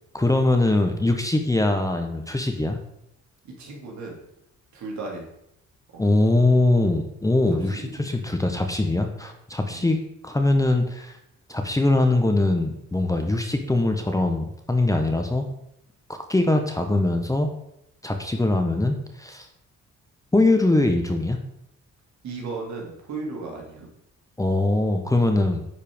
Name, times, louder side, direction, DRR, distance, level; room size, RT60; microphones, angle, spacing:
voice 1, 0.1-2.8 6.0-10.0 10.2-11.1 11.5-15.5 16.1-17.5 18.0-19.5 20.3-21.4 24.4-25.7, left 2 dB, 10° left, 4 dB, 0.8 m, -22 dB
voice 2, 3.4-4.2 4.7-5.3 5.9-6.0 7.5-8.5 9.7-9.9 22.2-23.9, right 3 dB, 65° right, -1 dB, 2.2 m, -36 dB
10.0 x 4.4 x 3.5 m, 0.78 s
cardioid pair, 90°, 30 cm